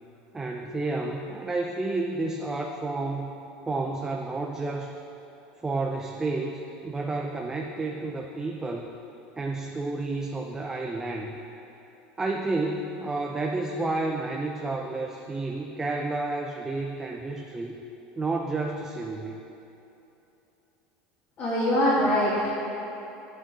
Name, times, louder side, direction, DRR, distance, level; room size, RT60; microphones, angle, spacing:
voice 1, 0.3-3.3 3.7-5.0 5.6-8.9 9.4-11.4 12.2-17.8 18.2-19.4, right 3 dB, 15° right, 1 dB, 0.5 m, -30 dB
voice 2, 21.4-22.5, equal, 35° left, -9 dB, 2.2 m, -23 dB
11.5 x 8.6 x 4.1 m, 3.0 s
supercardioid pair, 140°, 4 cm